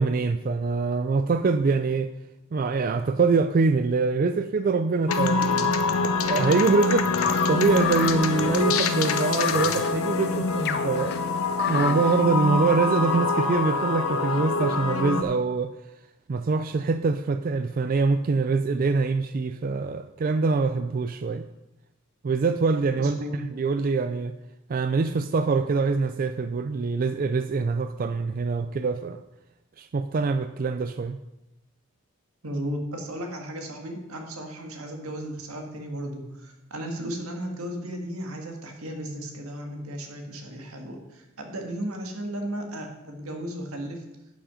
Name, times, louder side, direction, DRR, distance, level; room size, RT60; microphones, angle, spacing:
voice 1, 0.0-2.1 2.5-5.7 6.3-7.1 7.5-11.2 11.7-15.7 16.3-21.5 22.2-24.4 24.7-29.2 29.8-31.2, right 4 dB, 40° right, 10 dB, 0.3 m, -24 dB
sound 1, 5.1-15.2, left 3 dB, 75° left, 0.9 m, -25 dB
sound 2, 7.2-12.2, left 8 dB, 50° left, 0.5 m, -31 dB
voice 2, 23.0-23.4 32.4-44.0, right 1 dB, 85° right, 2 dB, 1.8 m, -35 dB
11.0 x 6.3 x 5.0 m, 0.94 s
head